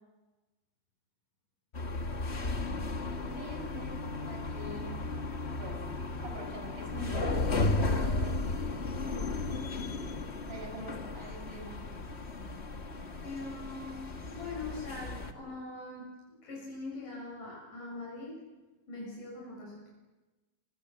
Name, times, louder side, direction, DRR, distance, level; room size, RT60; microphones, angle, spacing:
sound 1, 1.7-15.3, left 3 dB, 30° left, 1.3 m, -34 dB
voice 1, 3.2-5.0 5.6-5.8 6.2-8.3 9.7-10.2 10.5-11.8, right 1 dB, 45° right, 2 dB, 6.8 m, -44 dB
voice 2, 13.2-18.4 18.9-19.9, left 2 dB, 85° left, -3 dB, 8.6 m, -42 dB
26.5 x 26.0 x 7.7 m, 1.2 s
omnidirectional pair, 3.6 m